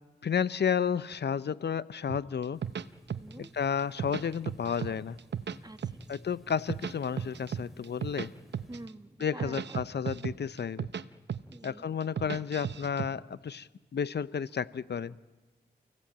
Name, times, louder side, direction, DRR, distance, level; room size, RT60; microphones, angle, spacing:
voice 1, 0.2-2.6 3.4-5.2 6.1-8.3 9.2-10.9 11.6-15.2, left 7 dB, 75° left, 17 dB, 0.7 m, -32 dB
sound 1, 2.1-3.5 3.8-4.9 5.2-6.2 6.5-8.3 8.5-8.9 9.2-11.0 11.3-11.7 12.0-13.1, right 8 dB, 80° right, 0.8 m, -35 dB
sound 2, 2.5-8.9, equal, ahead, 4.0 m, -56 dB
voice 2, 3.2-3.5 5.6-6.2 8.7-9.8 11.5-11.9, right 2 dB, 20° right, 11 dB, 1.3 m, -47 dB
30.0 x 16.0 x 8.7 m, 1.2 s
cardioid pair, 45°, 18 cm